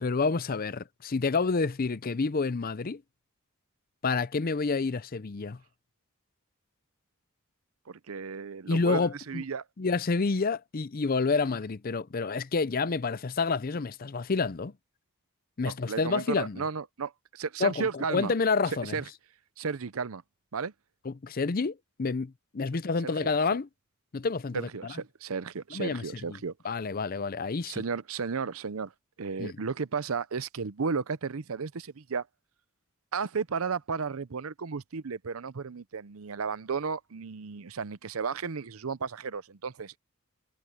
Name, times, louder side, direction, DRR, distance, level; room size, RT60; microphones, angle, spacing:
voice 1, 0.0-3.0 4.0-5.6 8.7-9.4 9.8-14.7 15.6-16.6 17.6-19.0 21.0-23.7 24.1-24.9 25.7-26.0 26.3-26.4 26.6-27.8 29.4-29.5, left 4 dB, 40° left, 0.5 m, -29 dB
voice 2, 7.9-9.6 15.6-18.3 18.8-19.0 19.6-20.2 20.5-20.7 23.0-23.3 24.5-26.5 27.6-28.9 29.2-32.3 33.1-40.0, right 5 dB, 80° right, 0.7 m, -34 dB
head